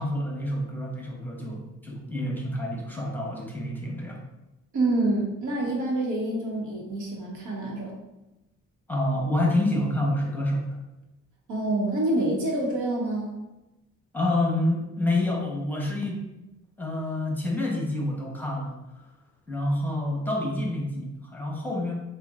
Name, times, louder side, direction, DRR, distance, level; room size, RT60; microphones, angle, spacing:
voice 1, 0.0-4.2 8.9-10.8 14.1-16.2 16.8-18.7 19.5-21.9, left 1 dB, 5° left, -2 dB, 1.0 m, -28 dB
voice 2, 4.7-7.9 11.5-13.4, right 2 dB, 80° right, -2 dB, 1.3 m, -27 dB
6.7 x 2.5 x 2.5 m, 0.98 s
cardioid pair, 90°, 30 cm